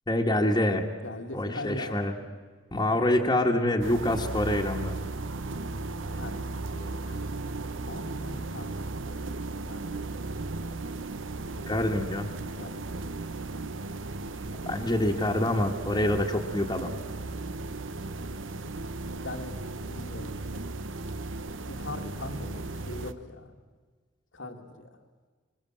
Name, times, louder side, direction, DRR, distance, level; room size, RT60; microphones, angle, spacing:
voice 1, 0.1-0.8 1.3-2.1 2.7-4.9 11.7-12.2 14.6-16.9, left 1 dB, 20° left, 0 dB, 1.5 m, -26 dB
voice 2, 1.0-2.0 6.0-9.1 9.7-9.9 12.5-13.2 19.2-20.4 21.8-23.5 24.3-24.9, left 2 dB, 75° left, 4 dB, 2.1 m, -41 dB
sound 1, 3.8-23.1, right 2 dB, 85° right, 1.1 m, -36 dB
25.5 x 22.5 x 7.5 m, 1.4 s
head